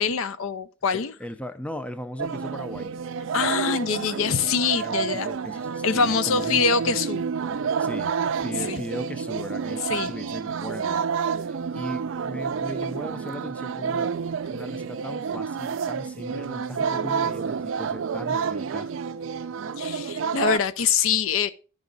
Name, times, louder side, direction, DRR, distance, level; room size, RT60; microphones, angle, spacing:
voice 1, 0.0-1.1 3.3-5.3 5.8-7.3 8.7-8.8 9.8-10.1 19.8-21.5, left 6 dB, 70° left, 0.5 m, -24 dB
voice 2, 1.2-2.9 4.6-6.7 7.8-11.0 11.3-18.9, left 1 dB, 5° left, 0.4 m, -37 dB
sound 1, 2.2-20.6, right 6 dB, 60° right, 0.4 m, -29 dB
10.5 x 4.8 x 3.9 m
head